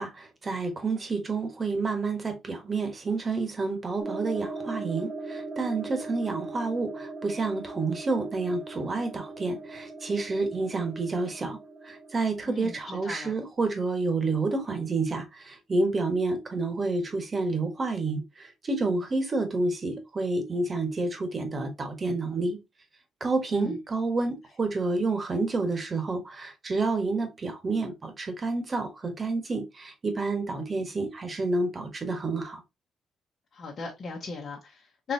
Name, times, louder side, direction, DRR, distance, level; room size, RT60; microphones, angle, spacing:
voice 1, 0.0-11.6 11.8-22.6 23.2-32.6, right 3 dB, 35° right, 1.2 m, -29 dB
sound 1, 4.0-13.5, right 3 dB, 10° right, 0.8 m, -40 dB
voice 2, 12.5-12.8 13.0-13.3 23.5-23.8 33.5-35.1, left 4 dB, 50° left, 1.0 m, -37 dB
4.5 x 3.0 x 2.6 m
cardioid pair, 90°, 0 cm